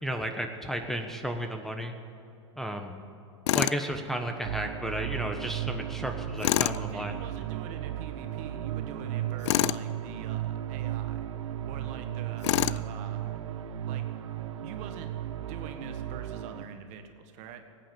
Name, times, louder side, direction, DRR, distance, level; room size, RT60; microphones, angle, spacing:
voice 1, 0.0-1.9 2.6-2.9 3.5-7.2, equal, ahead, 5 dB, 1.2 m, -33 dB
Tools, 3.5-3.8 6.4-6.8 9.4-9.8 12.4-12.9, left 15 dB, 65° left, 0.4 m, -26 dB
sound 1, 4.4-16.6, right 12 dB, 75° right, 0.8 m, -35 dB
voice 2, 6.5-11.2 11.6-14.1 14.6-17.6, right 7 dB, 50° right, 7 dB, 1.5 m, -45 dB
18.0 x 9.1 x 7.6 m, 2.8 s
hypercardioid pair, 105°, 16 cm